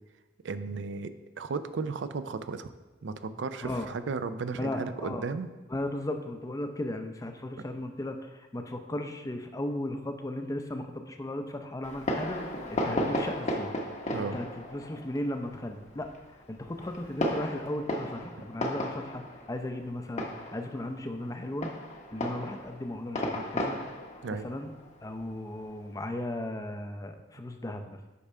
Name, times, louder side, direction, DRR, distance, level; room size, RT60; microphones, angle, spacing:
voice 1, 0.4-2.7 3.0-5.5 14.1-14.4 24.2-24.5, right 4 dB, 70° right, 11 dB, 0.4 m, -35 dB
voice 2, 3.6-3.9 4.6-5.3 5.7-12.4 12.7-13.7 14.2-14.5 14.7-16.1 16.5-20.3 20.5-21.7 22.1-23.8 24.4-24.7 25.0-28.0, left 1 dB, 20° left, 6 dB, 0.5 m, -36 dB
Fireworks, 11.8-26.0, left 1 dB, 40° left, 0.9 m, -35 dB
8.4 x 3.6 x 5.5 m, 1.1 s
head